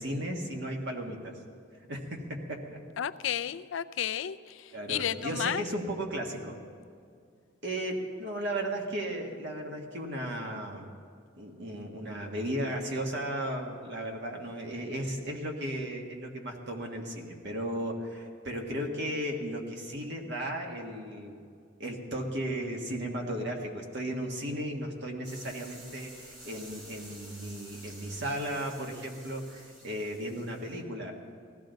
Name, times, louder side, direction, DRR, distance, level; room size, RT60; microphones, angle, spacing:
voice 1, 0.0-1.4 1.9-2.8 4.7-6.6 7.6-10.9 11.4-21.3 21.8-31.1, right 1 dB, 60° right, 1 dB, 1.5 m, -35 dB
voice 2, 3.0-5.6, left 9 dB, 70° left, 13 dB, 0.4 m, -32 dB
sound 1, 25.2-30.8, right 1 dB, 85° right, 5.0 m, -51 dB
19.5 x 15.0 x 4.0 m, 2.2 s
head